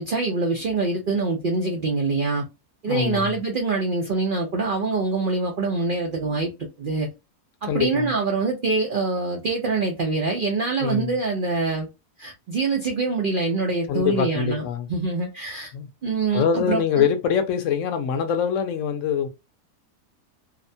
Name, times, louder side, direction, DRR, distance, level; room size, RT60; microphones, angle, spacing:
voice 1, 0.0-2.4 2.8-6.5 6.8-7.1 7.6-11.9 12.2-15.7 16.0-17.1, right 3 dB, 70° right, 0.5 m, -25 dB
voice 2, 2.9-3.4 7.7-8.1 10.8-11.1 13.9-14.9 15.7-15.9 16.3-19.3, left 7 dB, 65° left, 0.8 m, -24 dB
2.8 x 2.1 x 2.6 m
omnidirectional pair, 1.6 m